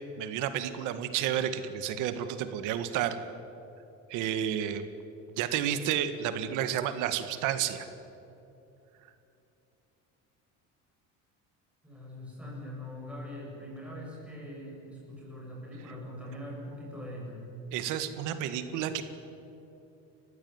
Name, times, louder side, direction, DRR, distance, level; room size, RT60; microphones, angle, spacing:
voice 1, 0.2-3.2 4.1-4.9 5.4-7.9 17.7-19.0, right 10 dB, 70° right, 10 dB, 1.9 m, -31 dB
voice 2, 11.8-17.4, left 1 dB, 5° right, -4 dB, 8.0 m, -42 dB
30.0 x 15.5 x 9.6 m, 2.9 s
cardioid pair, 170°, 31 cm